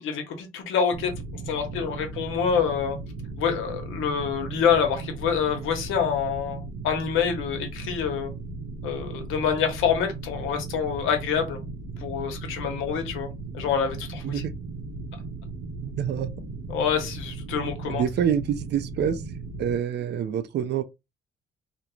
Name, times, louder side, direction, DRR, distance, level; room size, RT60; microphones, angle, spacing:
voice 1, 0.0-3.0 3.4-8.3 8.8-11.6 12.0-14.4 16.7-18.0, left 7 dB, 90° left, 0.8 m, -26 dB
sound 1, 0.9-19.8, right 3 dB, 90° right, 0.8 m, -37 dB
voice 2, 15.8-16.3 17.9-19.2 19.6-20.8, right 8 dB, 60° right, 0.4 m, -26 dB
2.5 x 2.0 x 3.0 m
cardioid pair, 90°, 20 cm